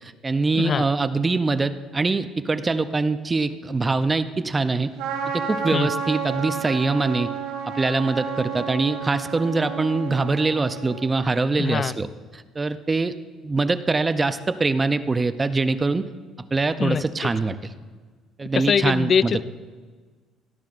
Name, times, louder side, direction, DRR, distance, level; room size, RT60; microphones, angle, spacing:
voice 1, 0.0-4.9 5.3-7.3 7.6-12.1 12.3-13.1 13.4-16.0 16.5-17.7 18.4-19.4, right 3 dB, 20° right, 11 dB, 0.5 m, -23 dB
Trumpet, 5.0-11.2, right 6 dB, 85° right, 2.5 m, -31 dB
voice 2, 11.6-11.9 16.8-17.0 18.5-19.4, left 7 dB, 40° left, 16 dB, 0.3 m, -22 dB
18.0 x 12.5 x 2.5 m, 1.4 s
cardioid pair, 115°, 0 cm